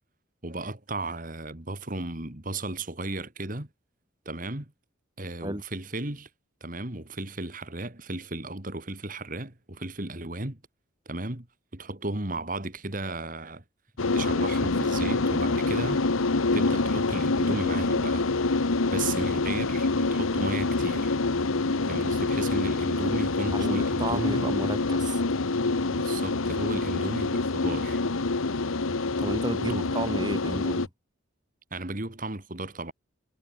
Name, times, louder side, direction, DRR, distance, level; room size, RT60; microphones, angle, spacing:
voice 1, 0.4-3.7 4.3-4.7 5.2-6.3 6.6-10.6 11.1-11.5 11.7-13.6 14.1-16.0 16.5-18.3 18.9-21.2 21.8-24.6 25.9-28.0 29.5-30.0 31.7-32.9, right 2 dB, 40° right, 2.3 m, -35 dB
sound 1, 14.0-30.9, left 3 dB, 90° left, 1.1 m, -26 dB
voice 2, 23.5-25.2 29.2-30.9, right 1 dB, 20° right, 5.1 m, -32 dB
head